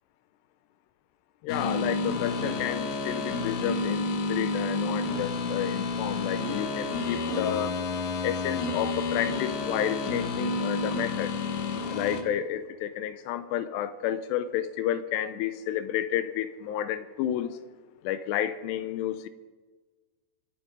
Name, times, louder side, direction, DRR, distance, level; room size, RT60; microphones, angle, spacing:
voice 1, 1.4-7.8 8.2-11.3 11.9-17.6 18.0-19.3, left 11 dB, 85° left, 13 dB, 2.7 m, -31 dB
sound 1, 1.5-12.2, left 3 dB, 65° left, 2.6 m, -30 dB
25.5 x 8.9 x 5.1 m, 1.4 s
omnidirectional pair, 5.1 m